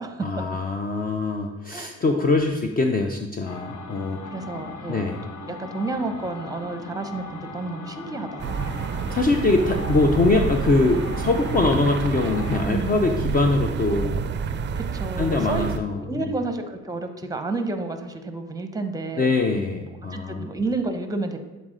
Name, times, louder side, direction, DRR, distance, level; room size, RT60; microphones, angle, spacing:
voice 1, 0.2-4.2 4.9-5.2 9.1-14.3 15.2-16.3 19.2-20.5, left 3 dB, 30° left, 4 dB, 0.5 m, -23 dB
sound 1, 3.5-12.7, left 4 dB, 80° left, 0.8 m, -38 dB
voice 2, 4.3-5.0 5.5-8.7 12.6-13.0 14.8-15.7 16.0-19.3 20.1-21.4, right 3 dB, 10° right, 7 dB, 0.7 m, -30 dB
sound 2, 8.4-15.8, right 6 dB, 40° right, 0.4 m, -28 dB
7.7 x 4.1 x 3.7 m, 1.2 s
cardioid pair, 90°, 30 cm